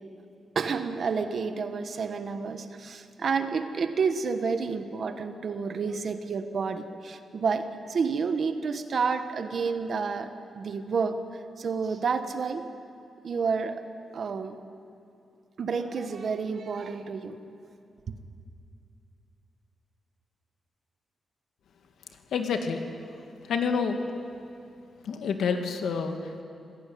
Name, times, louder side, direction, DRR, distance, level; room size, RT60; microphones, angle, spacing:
voice 1, 0.5-12.7 13.2-13.8 14.1-14.6 15.6-17.4, right 5 dB, 45° right, 8 dB, 1.4 m, -30 dB
voice 2, 22.3-22.8 23.4-24.0 25.0-26.4, left 5 dB, 80° left, 5 dB, 2.2 m, -28 dB
26.5 x 17.5 x 9.5 m, 2.5 s
wide cardioid pair, 170°, 0 cm